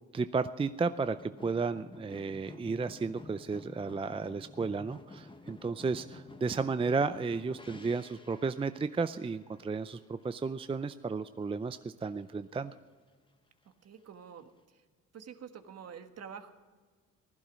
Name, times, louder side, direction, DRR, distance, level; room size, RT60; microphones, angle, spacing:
voice 1, 0.1-12.7, right 4 dB, 20° right, 11 dB, 0.5 m, -33 dB
sound 1, 0.8-10.8 11.1-11.9 12.2-12.3, left 2 dB, 15° left, 1.2 m, -52 dB
voice 2, 13.8-14.8 15.1-16.5, right 7 dB, 55° right, 7 dB, 1.5 m, -48 dB
16.0 x 12.0 x 6.2 m, 1.5 s
cardioid pair, 90°, 30 cm